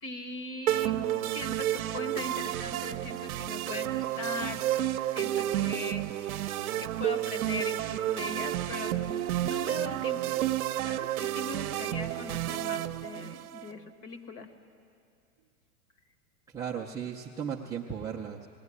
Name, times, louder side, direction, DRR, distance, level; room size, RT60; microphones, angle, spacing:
voice 1, 0.0-6.5 6.8-10.4 10.8-14.5, left 3 dB, 30° left, 7 dB, 1.5 m, -40 dB
sound 1, 0.7-13.7, right 13 dB, 75° right, 0.7 m, -31 dB
voice 2, 16.5-18.5, right 7 dB, 10° right, -4 dB, 0.5 m, -36 dB
20.0 x 16.5 x 9.6 m, 2.5 s
hypercardioid pair, 145°, 42 cm